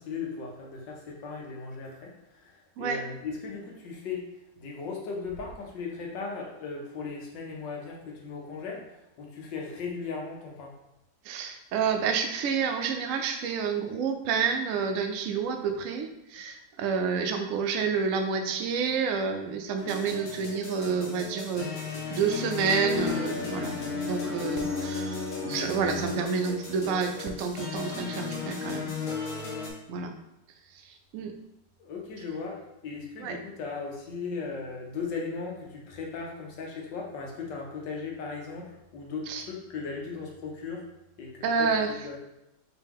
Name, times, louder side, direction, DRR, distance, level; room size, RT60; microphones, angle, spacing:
voice 1, 0.0-4.3 4.6-10.7 31.8-40.9 41.2-41.7 42.0-42.2, left 4 dB, 85° left, -1 dB, 1.6 m, -37 dB
voice 2, 11.2-21.7 22.1-23.8 24.0-29.0 29.9-30.1 30.7-31.3 33.2-33.4 39.3-39.5 41.4-41.9, right 5 dB, 70° right, 5 dB, 0.7 m, -29 dB
sound 1, 19.8-29.7, left 4 dB, 65° left, 1.5 m, -34 dB
4.6 x 3.0 x 3.5 m, 0.88 s
omnidirectional pair, 1.9 m